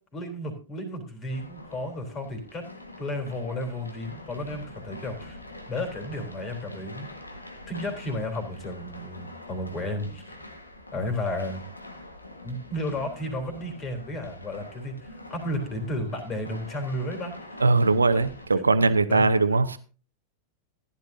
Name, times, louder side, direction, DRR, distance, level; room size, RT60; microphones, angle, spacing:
voice 1, 0.1-2.6 3.0-5.4 5.7-7.1 7.7-10.4 10.9-11.6 12.4-17.6 18.5-19.2, left 1 dB, 25° left, 5 dB, 3.5 m, -33 dB
sound 1, 1.3-18.5, left 2 dB, 80° left, 1.7 m, -44 dB
voice 2, 17.6-19.8, right 3 dB, 75° right, 13 dB, 0.8 m, -21 dB
14.5 x 11.5 x 2.7 m, 0.36 s
figure-of-eight pair, 90°, 0 cm